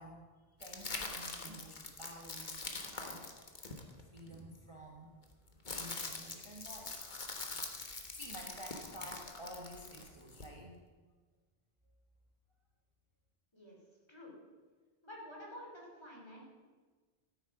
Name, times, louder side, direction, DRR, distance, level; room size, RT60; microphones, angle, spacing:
voice 1, 0.0-2.6 2.9-3.3 3.9-5.1 5.7-7.0 7.7-10.8, equal, 30° right, -1 dB, 1.4 m, -51 dB
sound 1, 0.6-4.3 5.2-10.5, left 3 dB, 50° left, 1.4 m, -44 dB
voice 2, 15.0-16.4, equal, 25° left, -3 dB, 3.4 m, -50 dB
13.5 x 8.5 x 6.0 m, 1.4 s
omnidirectional pair, 1.0 m